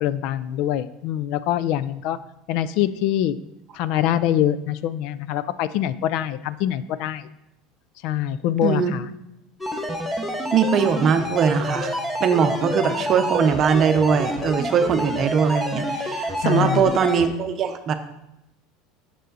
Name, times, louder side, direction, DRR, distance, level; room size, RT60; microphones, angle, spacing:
voice 1, 0.0-2.2 2.5-3.4 3.7-7.3 8.0-9.1 16.4-16.9, left 11 dB, 60° left, 15 dB, 0.3 m, -24 dB
sound 1, 9.6-17.3, equal, 5° left, 0.9 m, -28 dB
voice 2, 10.5-17.9, right 6 dB, 40° right, 8 dB, 0.7 m, -21 dB
6.7 x 6.3 x 4.0 m, 0.87 s
supercardioid pair, 130°, 0 cm